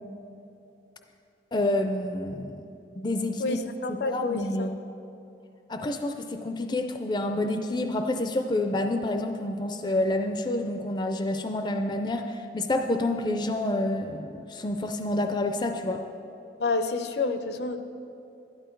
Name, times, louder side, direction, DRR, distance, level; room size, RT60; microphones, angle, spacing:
voice 1, 1.5-2.6 3.0-3.6 3.9-4.8 5.7-16.0, left 1 dB, 25° left, 6 dB, 0.4 m, -28 dB
voice 2, 3.4-4.7 16.6-17.8, left 3 dB, 65° left, 9 dB, 0.6 m, -29 dB
12.0 x 11.0 x 4.6 m, 2.8 s
head